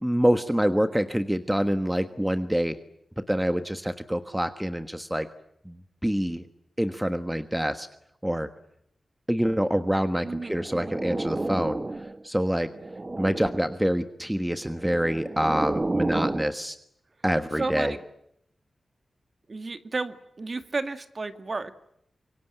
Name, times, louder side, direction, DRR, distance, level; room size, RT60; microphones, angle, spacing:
voice 1, 0.0-2.8 3.3-5.3 5.6-6.4 6.8-7.9 8.2-8.5 9.3-11.8 12.2-12.7 13.2-16.7 17.2-18.0, equal, 5° right, 9 dB, 1.4 m, -26 dB
voice 2, 10.2-11.0 17.6-18.0 19.5-21.8, right 3 dB, 45° right, 9 dB, 2.0 m, -33 dB
sound 1, 10.4-12.2 12.6-13.8 14.7-16.5, right 2 dB, 30° right, 1.2 m, -31 dB
26.0 x 23.5 x 9.0 m, 0.75 s
wide cardioid pair, 75°, 0 cm